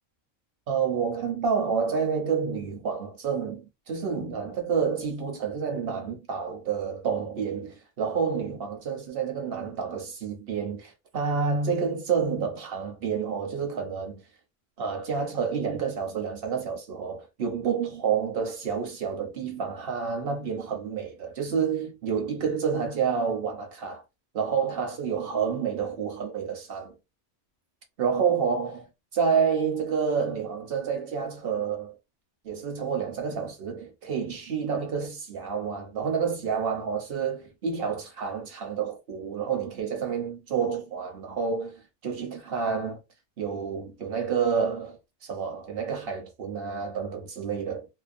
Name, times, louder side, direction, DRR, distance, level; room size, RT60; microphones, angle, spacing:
voice 1, 0.7-3.6 3.9-14.2 14.8-24.0 24.3-26.9 28.0-28.9 29.1-31.9 32.4-43.0 43.4-47.9, right 6 dB, 50° right, 0.8 m, -29 dB
2.6 x 2.1 x 2.5 m
omnidirectional pair, 1.5 m